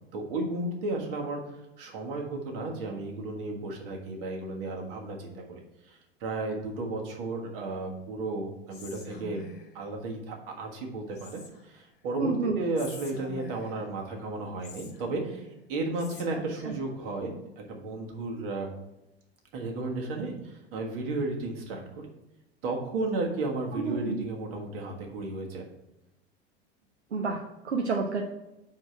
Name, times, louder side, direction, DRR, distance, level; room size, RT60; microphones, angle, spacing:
voice 1, 0.1-9.4 9.7-18.7 19.5-22.1 22.6-25.6, right 2 dB, 55° right, 1 dB, 1.6 m, -34 dB
Whispering, 8.7-9.8 11.2-11.8 12.8-13.9 14.6-15.5 16.0-16.8, left 3 dB, 30° left, 1.2 m, -46 dB
voice 2, 12.2-12.6 16.3-16.7 23.7-24.2 27.1-28.2, right 4 dB, 85° right, 1 dB, 0.7 m, -30 dB
4.9 x 4.4 x 6.0 m, 0.95 s
figure-of-eight pair, 80°, 32 cm